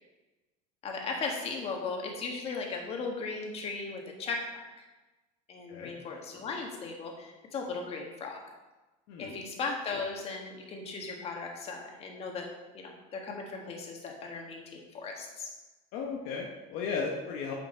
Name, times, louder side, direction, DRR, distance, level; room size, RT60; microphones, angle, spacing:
voice 1, 0.8-4.8 5.5-8.4 9.2-12.5 12.7-15.5, left 4 dB, 40° left, 1 dB, 1.7 m, -37 dB
voice 2, 15.9-17.5, left 5 dB, 70° left, 0 dB, 1.1 m, -35 dB
9.3 x 5.0 x 4.4 m, 1.1 s
cardioid pair, 135°, 17 cm